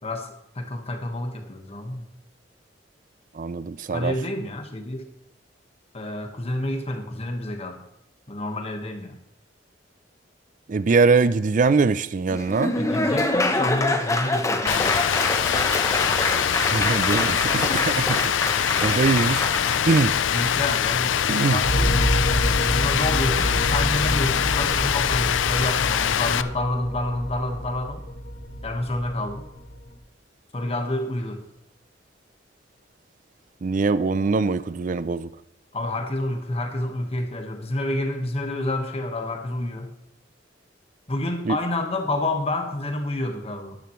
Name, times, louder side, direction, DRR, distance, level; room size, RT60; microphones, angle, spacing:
voice 1, 0.0-2.1 3.9-5.0 5.9-7.8 8.3-9.2 12.7-15.0 17.7-17.8 20.2-22.0 22.7-28.0 28.6-29.5 30.5-31.4 34.1-34.4 35.7-39.9 41.1-43.8, left 1 dB, 35° left, 5 dB, 1.4 m, -29 dB
voice 2, 3.3-4.1 10.7-12.7 16.7-17.8 18.2-18.3 18.8-19.4 19.9-20.1 21.3-21.6 33.6-35.3 41.5-41.6, right 4 dB, 45° right, 15 dB, 0.4 m, -22 dB
Laughter / Applause, 12.3-20.2, left 2 dB, 15° left, 0.9 m, -25 dB
Rain, 14.7-26.4, left 9 dB, 85° left, 0.4 m, -23 dB
sound 1, 21.6-29.9, equal, 65° left, 2.9 m, -27 dB
13.0 x 10.5 x 3.1 m, 0.75 s
head